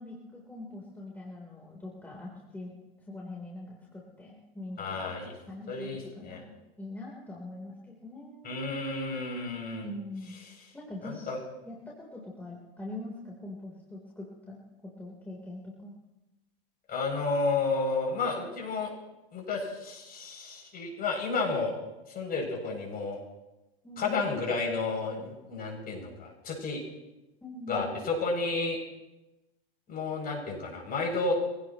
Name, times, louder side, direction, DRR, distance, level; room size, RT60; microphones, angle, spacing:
voice 1, 0.0-2.7 3.1-5.2 5.5-5.9 6.2-8.5 9.8-10.4 10.7-11.3 11.6-14.6 15.0-16.0 23.8-24.3 27.4-27.9, left 2 dB, 5° left, -3 dB, 3.9 m, -43 dB
voice 2, 4.8-5.3 5.7-6.4 8.4-9.9 11.0-11.4 16.9-18.9 19.3-21.7 22.1-23.2 24.0-26.8 27.7-28.8 29.9-31.4, left 3 dB, 30° left, 0 dB, 7.7 m, -31 dB
25.5 x 17.5 x 3.2 m, 1.0 s
hypercardioid pair, 105°, 30 cm